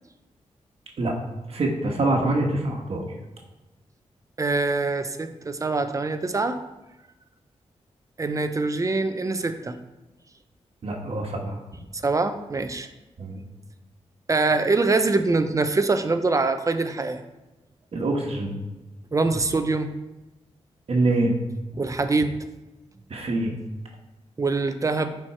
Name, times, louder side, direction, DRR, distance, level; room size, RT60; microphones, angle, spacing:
voice 1, 1.5-3.0 10.8-11.6 13.2-13.4 17.9-18.5 20.9-21.3 23.1-23.5, right 2 dB, 60° right, 1 dB, 1.4 m, -25 dB
voice 2, 4.4-6.6 8.2-9.8 12.0-12.9 14.3-17.2 19.1-19.9 21.8-22.3 24.4-25.2, right 3 dB, 30° right, 9 dB, 0.7 m, -24 dB
11.5 x 4.6 x 4.4 m, 1.1 s
wide cardioid pair, 110°, 12 cm